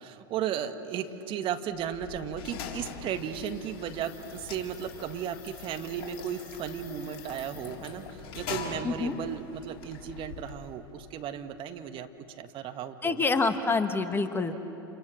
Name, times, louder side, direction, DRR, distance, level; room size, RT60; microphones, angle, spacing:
voice 1, 0.0-12.1 12.4-13.3, right 9 dB, 45° right, 7 dB, 1.9 m, -35 dB
sound 1, 1.7-11.0, left 6 dB, 55° left, 3.9 m, -43 dB
voice 2, 13.0-14.5, left 3 dB, 15° left, 8 dB, 1.8 m, -27 dB
30.0 x 29.5 x 6.5 m, 3.0 s
hypercardioid pair, 85°, 13 cm